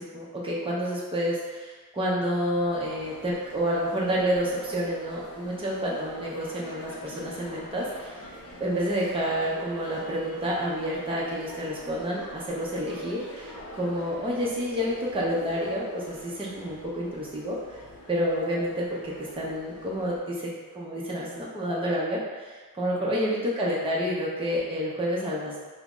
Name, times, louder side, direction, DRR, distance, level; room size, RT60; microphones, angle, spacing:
voice 1, 0.0-8.3 8.6-17.8 18.1-25.6, equal, 15° right, -5 dB, 0.6 m, -29 dB
sound 1, 2.4-20.2, left 1 dB, 45° left, 0.6 m, -45 dB
3.5 x 2.0 x 3.6 m, 1.4 s
wide cardioid pair, 135°, 36 cm